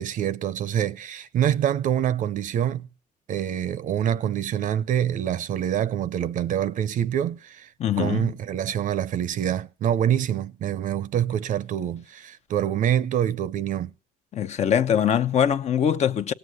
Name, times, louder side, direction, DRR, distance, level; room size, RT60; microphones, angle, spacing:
voice 1, 0.0-2.9 3.3-7.7 8.0-13.9, right 10 dB, 55° right, 0.7 m, -26 dB
voice 2, 7.8-8.3 14.3-16.3, left 9 dB, 45° left, 0.8 m, -22 dB
17.5 x 7.9 x 9.6 m
cardioid pair, 120°, 16 cm